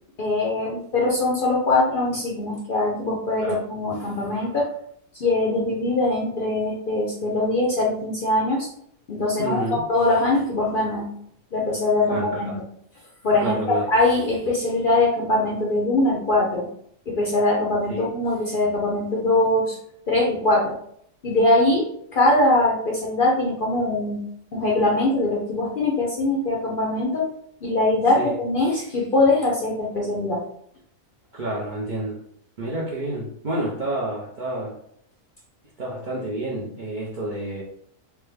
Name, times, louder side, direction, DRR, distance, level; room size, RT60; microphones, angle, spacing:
voice 1, 0.2-4.7 5.1-8.7 9.1-11.1 11.5-12.5 13.2-16.7 17.1-19.8 20.1-20.8 21.2-24.2 24.5-27.3 27.6-30.4, left 2 dB, 55° left, -3 dB, 0.6 m, -22 dB
voice 2, 9.4-9.8 12.1-12.6 13.4-13.9 17.9-18.1 28.1-28.3 31.3-32.2 32.6-34.8 35.8-37.6, right 1 dB, 55° right, -5 dB, 0.5 m, -29 dB
3.3 x 2.2 x 3.2 m, 0.67 s
omnidirectional pair, 1.4 m